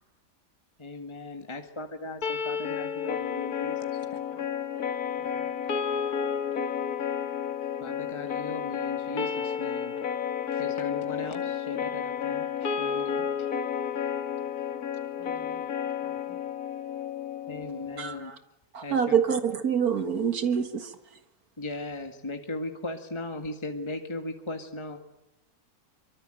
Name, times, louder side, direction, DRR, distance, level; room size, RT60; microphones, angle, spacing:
voice 1, 0.8-4.2 7.8-9.9 10.5-13.3 17.5-18.3 18.8-19.1 21.6-25.0, left 2 dB, 20° left, 1.9 m, -38 dB
sound 1, 2.2-18.3, left 8 dB, 85° left, 2.2 m, -31 dB
voice 2, 5.1-5.6 5.9-6.0 6.4-6.6 15.1-16.4, right 1 dB, 15° right, 5.5 m, -53 dB
voice 3, 18.0-18.4 18.7-20.9, right 7 dB, 85° right, 2.2 m, -26 dB
25.0 x 24.0 x 9.0 m
omnidirectional pair, 1.5 m